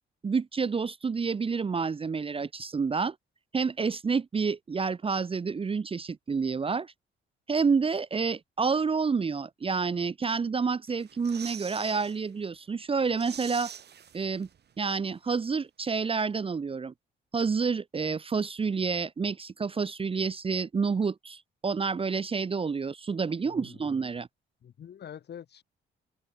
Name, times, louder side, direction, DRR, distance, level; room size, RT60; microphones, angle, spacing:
voice 1, 0.2-3.1 3.5-6.9 7.5-13.7 14.1-14.5 14.8-16.9 17.3-24.3, right 5 dB, 30° right, 0.7 m, -29 dB
sound 1, 10.9-12.2 12.6-12.7 13.0-14.7 15.0-15.1, right 8 dB, 55° right, 5.0 m, -44 dB
voice 2, 23.4-23.8 24.6-25.6, left 9 dB, 55° left, 2.5 m, -45 dB
cardioid pair, 90°, 20 cm